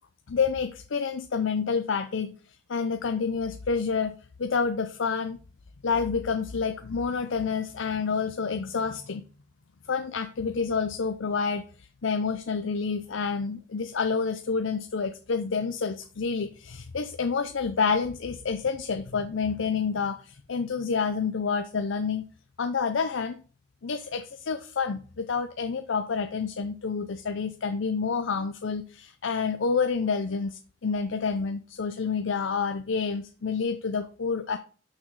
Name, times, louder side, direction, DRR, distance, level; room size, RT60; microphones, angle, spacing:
voice 1, 0.3-2.4 2.7-5.4 5.8-9.2 9.9-22.2 22.6-23.4 23.8-34.6, left 5 dB, 80° left, 8 dB, 0.6 m, -28 dB
6.3 x 6.1 x 4.7 m, 0.39 s
head